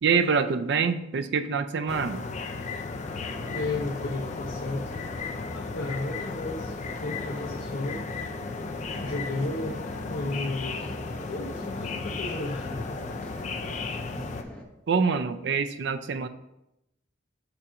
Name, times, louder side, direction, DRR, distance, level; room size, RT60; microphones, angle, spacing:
voice 1, 0.0-2.2 14.9-16.3, right 5 dB, 60° right, 10 dB, 0.4 m, -25 dB
sound 1, 1.9-14.4, left 4 dB, 35° left, 0.3 m, -35 dB
sound 2, 3.0-14.6, left 1 dB, 5° left, 0.8 m, -41 dB
voice 2, 3.5-4.9 5.5-8.1 9.0-9.8 10.1-10.8 11.3-13.0, left 2 dB, 70° left, 0 dB, 0.7 m, -33 dB
6.9 x 2.5 x 5.6 m, 0.86 s
head